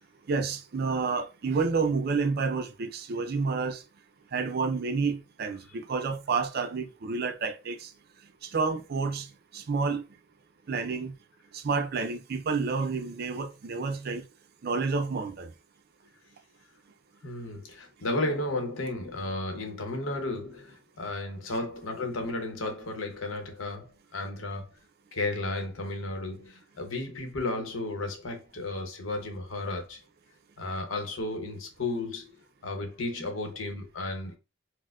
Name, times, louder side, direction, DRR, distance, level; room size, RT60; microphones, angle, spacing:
voice 1, 0.3-3.8 4.3-7.9 8.5-9.3 9.5-10.0 10.7-11.1 11.5-14.2 14.6-15.5, right 4 dB, 50° right, 0.4 m, -29 dB
voice 2, 17.2-24.8 25.1-30.0 30.6-32.3 32.6-34.4, left 2 dB, 90° left, 0.8 m, -33 dB
4.2 x 2.1 x 2.3 m
head